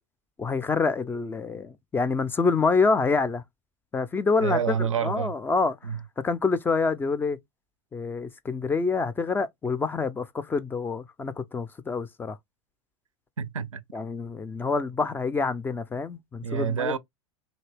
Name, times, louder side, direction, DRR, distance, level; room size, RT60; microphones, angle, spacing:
voice 1, 0.4-3.4 3.9-4.8 5.0-5.8 6.2-7.4 7.9-12.4 13.9-17.0, left 4 dB, 15° left, 0.3 m, -26 dB
voice 2, 4.4-5.3 5.8-6.0 13.4-13.8 16.4-17.0, right 7 dB, 85° right, 0.4 m, -28 dB
3.0 x 2.7 x 3.2 m
figure-of-eight pair, 90°, 16 cm